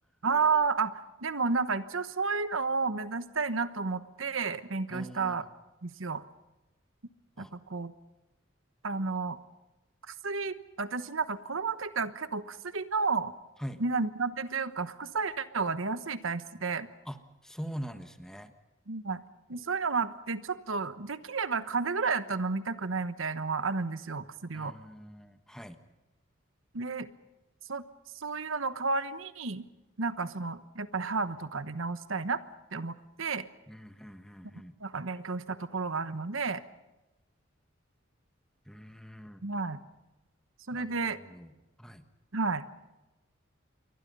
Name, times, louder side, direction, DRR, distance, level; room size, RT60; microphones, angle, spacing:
voice 1, 0.2-0.9 1.2-5.4 5.8-6.2 7.4-7.9 8.8-9.4 10.1-13.3 13.8-16.9 18.9-19.2 19.5-24.7 26.7-27.1 27.7-27.8 28.1-29.6 30.0-32.4 32.7-33.5 34.8-36.6 39.4-39.8 40.7-41.2 42.3-42.7, right 4 dB, 85° right, 12 dB, 1.2 m, -31 dB
voice 2, 4.9-5.4 7.4-7.5 13.6-13.8 17.1-18.5 24.5-25.8 33.7-34.7 38.7-39.4 40.7-40.8 41.3-42.0, equal, 5° left, 8 dB, 1.3 m, -43 dB
28.5 x 23.0 x 5.5 m, 1.0 s
head